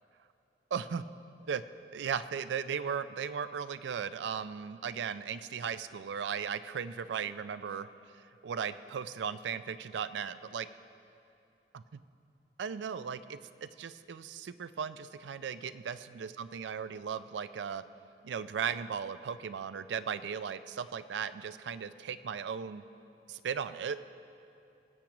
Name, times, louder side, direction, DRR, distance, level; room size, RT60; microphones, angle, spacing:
voice 1, 0.7-1.0 1.5-1.6 1.9-7.9 8.4-10.7 11.7-12.0 12.6-17.8 18.2-22.8 23.3-24.0, right 7 dB, 85° right, 13 dB, 0.4 m, -37 dB
20.5 x 8.5 x 3.0 m, 2.7 s
head